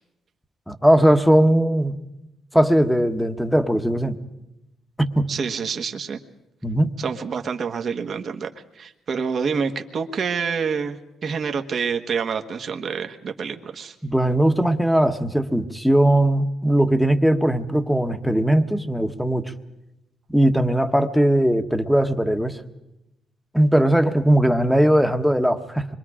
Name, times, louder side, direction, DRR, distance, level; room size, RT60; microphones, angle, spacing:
voice 1, 0.7-1.9 2.5-4.2 5.0-5.3 6.6-6.9 14.0-19.4 20.3-22.6 23.5-25.9, right 1 dB, ahead, 8 dB, 1.3 m, -19 dB
voice 2, 5.3-6.2 7.0-8.5 8.7-13.9, right 6 dB, 50° right, 5 dB, 1.3 m, -27 dB
26.0 x 23.0 x 5.0 m, 0.92 s
cardioid pair, 90°, 0 cm